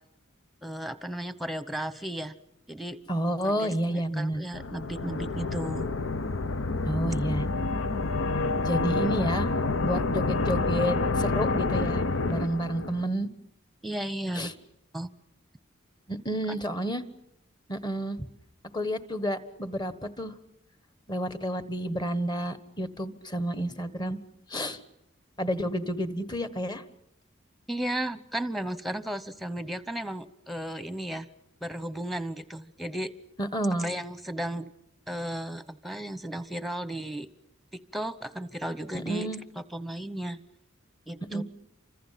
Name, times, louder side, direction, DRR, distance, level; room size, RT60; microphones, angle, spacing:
voice 1, 0.6-2.3 2.7-3.0 3.4-5.9 13.8-14.5 14.9-15.1 27.7-31.3 31.6-33.1 33.8-34.7 35.1-37.3 37.7-39.3 39.6-40.4 41.1-41.4, right 1 dB, ahead, 13 dB, 1.0 m, -34 dB
voice 2, 3.1-4.5 6.8-7.5 8.6-9.5 9.8-12.0 12.3-13.3 14.3-14.5 16.1-17.0 17.7-18.2 18.7-20.4 21.1-24.2 24.5-24.8 25.4-26.8 33.4-33.9 38.9-39.4 41.3-41.4, equal, 20° left, 12 dB, 1.4 m, -30 dB
sound 1, 4.5-13.0, left 3 dB, 80° left, 0.9 m, -28 dB
29.0 x 25.5 x 5.8 m, 0.84 s
head